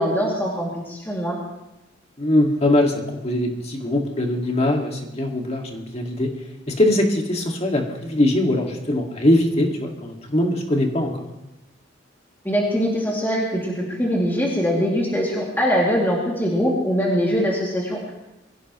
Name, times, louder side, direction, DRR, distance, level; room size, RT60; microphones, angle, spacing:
voice 1, 0.0-1.4 12.4-18.1, equal, 10° left, -4 dB, 2.5 m, -22 dB
voice 2, 2.2-6.3 6.7-11.3, left 1 dB, 35° left, 2 dB, 2.0 m, -21 dB
22.5 x 16.0 x 3.1 m, 0.92 s
head